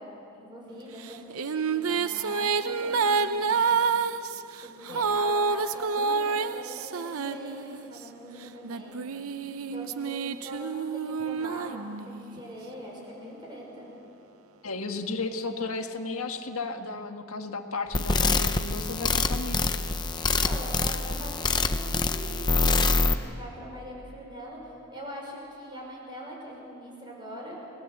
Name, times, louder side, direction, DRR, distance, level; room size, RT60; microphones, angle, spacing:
voice 1, 0.0-3.8 4.6-9.2 9.6-13.9 20.3-27.6, equal, 20° right, -2 dB, 5.8 m, -42 dB
sound 1, 1.0-8.0 8.6-12.4, right 5 dB, 80° right, 0.7 m, -28 dB
voice 2, 14.6-19.9, left 3 dB, 80° left, 5 dB, 1.6 m, -34 dB
sound 2, 17.9-23.1, left 3 dB, 20° left, 0.8 m, -25 dB
29.0 x 19.0 x 8.1 m, 2.9 s
head